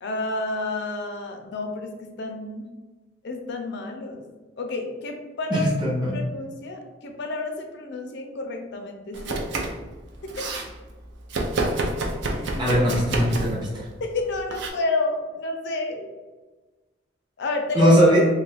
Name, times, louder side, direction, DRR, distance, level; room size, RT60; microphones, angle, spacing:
voice 1, 0.0-1.9 2.2-2.7 3.2-4.2 4.6-5.7 6.1-9.5 12.3-12.8 14.0-16.1 17.4-17.9, left 2 dB, 65° left, 4 dB, 0.4 m, -30 dB
voice 2, 5.5-6.2 12.6-13.9 17.7-18.3, equal, 25° right, -5 dB, 0.6 m, -20 dB
Domestic sounds home sounds, 9.1-9.8 10.1-10.7 11.3-13.6 14.5-14.7, right 2 dB, 65° right, 0.4 m, -28 dB
2.7 x 2.3 x 3.3 m, 1.2 s
head